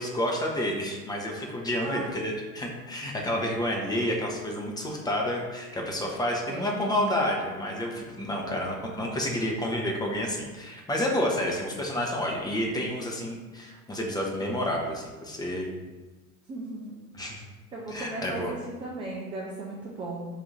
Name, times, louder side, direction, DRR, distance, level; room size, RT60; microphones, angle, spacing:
voice 1, 0.0-15.7 17.2-17.4 17.9-18.5, left 1 dB, 10° left, -1 dB, 0.7 m, -29 dB
voice 2, 1.8-2.1 6.5-6.7 11.4-11.6 16.5-17.0 17.7-20.3, right 2 dB, 15° right, -3 dB, 0.3 m, -36 dB
4.1 x 2.7 x 4.9 m, 1.2 s
figure-of-eight pair, 75°, 44 cm